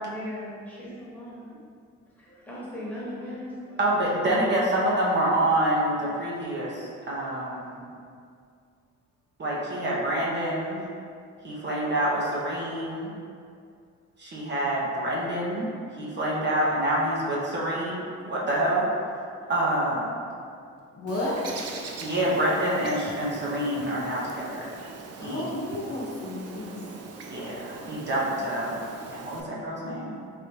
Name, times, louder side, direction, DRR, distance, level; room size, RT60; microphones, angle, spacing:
voice 1, 0.0-1.6 2.2-3.8, left 1 dB, 5° left, -8 dB, 1.3 m, -38 dB
voice 2, 3.8-7.8 9.4-10.9 11.4-13.1 14.2-15.7 16.0-18.9 19.5-20.1 22.0-24.7 25.2-25.5 27.3-30.3, right 1 dB, 35° right, -5 dB, 0.9 m, -27 dB
voice 3, 20.9-21.8 25.2-26.8, left 1 dB, 50° left, -5 dB, 1.0 m, -32 dB
Bird, 21.1-29.4, right 4 dB, 55° right, 0.5 m, -41 dB
3.4 x 2.5 x 4.4 m, 2.3 s
cardioid pair, 90°, 30 cm